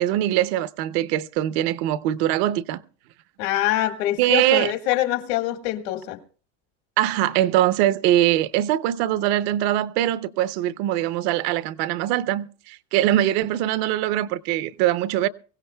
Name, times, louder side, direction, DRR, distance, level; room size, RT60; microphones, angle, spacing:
voice 1, 0.0-2.8 4.2-4.7 7.0-15.3, right 13 dB, 75° right, 0.7 m, -22 dB
voice 2, 3.4-6.2, left 14 dB, 75° left, 1.8 m, -24 dB
24.0 x 16.0 x 2.2 m
cardioid pair, 160°, 33 cm